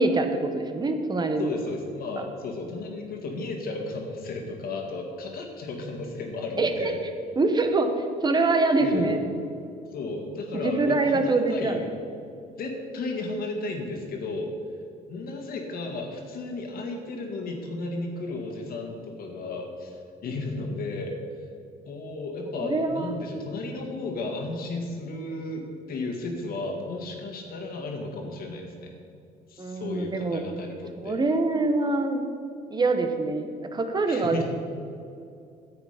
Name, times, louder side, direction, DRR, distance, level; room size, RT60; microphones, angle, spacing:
voice 1, 0.0-1.5 6.6-6.9 7.4-9.2 10.5-11.8 22.6-23.1 29.6-30.4 31.0-32.2 32.7-34.4, right 3 dB, 25° right, 6 dB, 1.0 m, -24 dB
voice 2, 1.4-7.0 8.8-9.2 9.9-11.9 12.6-14.5 15.1-21.5 21.9-28.9 29.5-31.2 34.1-34.4, left 3 dB, 60° left, 2 dB, 1.9 m, -34 dB
10.0 x 7.9 x 5.0 m, 2.5 s
cardioid pair, 110°, 17 cm